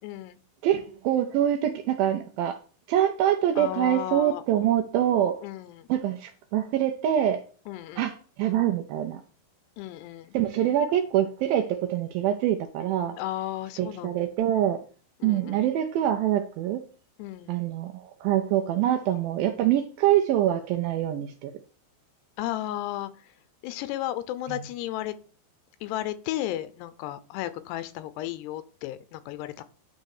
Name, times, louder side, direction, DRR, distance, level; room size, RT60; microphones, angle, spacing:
voice 1, 0.0-0.4 3.6-4.4 5.4-5.9 7.7-8.1 9.8-10.3 13.2-14.1 15.2-15.6 17.2-17.6 22.4-23.1 23.6-25.1 25.8-29.6, left 14 dB, 85° left, 2.8 m, -34 dB
voice 2, 0.6-2.6 2.9-5.4 5.9-7.4 8.0-9.2 10.3-13.2 13.8-14.8 15.2-16.8 17.5-21.5 24.5-24.6, right 11 dB, 80° right, 2.1 m, -25 dB
9.7 x 3.8 x 6.5 m
omnidirectional pair, 4.7 m